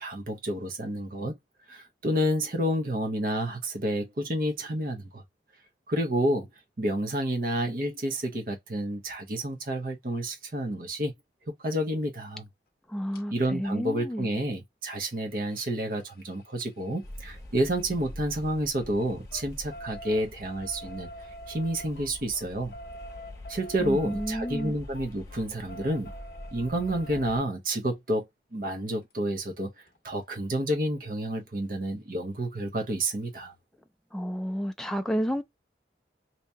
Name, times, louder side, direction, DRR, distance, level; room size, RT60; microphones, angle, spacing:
voice 1, 0.0-1.4 1.7-5.2 5.9-6.5 6.8-11.1 11.6-12.5 13.3-21.1 21.5-22.7 23.5-26.1 26.5-28.3 28.5-29.7 30.0-33.5, right 1 dB, 50° right, 0.8 m, -29 dB
voice 2, 12.9-14.4 23.8-24.8 34.1-35.4, equal, 5° left, 0.3 m, -31 dB
sound 1, 13.1-13.2 14.9-18.4 18.7-27.4 29.1-29.2 29.5-29.6 29.9-30.0, equal, 55° left, 0.7 m, -47 dB
sound 2, 17.0-27.4, left 1 dB, 20° left, 0.7 m, -45 dB
2.9 x 2.7 x 3.3 m
head